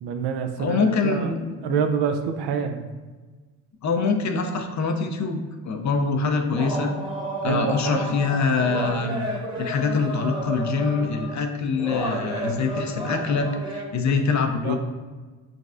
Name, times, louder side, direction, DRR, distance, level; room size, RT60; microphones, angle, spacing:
voice 1, 0.0-0.8 1.0-1.3 1.6-2.8 7.4-8.1 14.6-14.8, right 7 dB, 55° right, 7 dB, 0.6 m, -26 dB
voice 2, 0.6-1.8 2.4-2.5 3.8-6.9 7.4-9.2 9.6-14.8, left 4 dB, 35° left, 5 dB, 0.6 m, -24 dB
sound 1, 6.5-11.4 11.8-13.9, right 1 dB, 10° right, 1.1 m, -31 dB
5.0 x 3.1 x 2.5 m, 1.3 s
hypercardioid pair, 50°, 49 cm